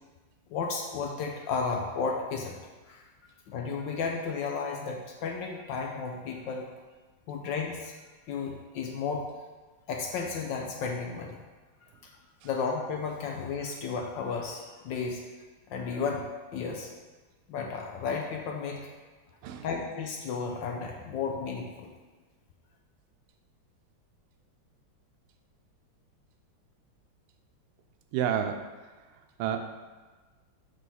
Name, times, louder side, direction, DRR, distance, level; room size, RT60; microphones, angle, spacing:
voice 1, 0.5-2.6 2.9-3.0 3.5-6.7 7.3-7.9 8.3-9.3 9.9-11.4 12.0-12.1 12.4-15.2 15.7-16.9 17.5-18.9 19.6-21.9, left 5 dB, 75° left, 1 dB, 1.1 m, -33 dB
voice 2, 28.1-28.6 29.4-29.7, right 9 dB, 85° right, 5 dB, 1.5 m, -29 dB
5.0 x 3.7 x 5.4 m, 1.3 s
omnidirectional pair, 2.4 m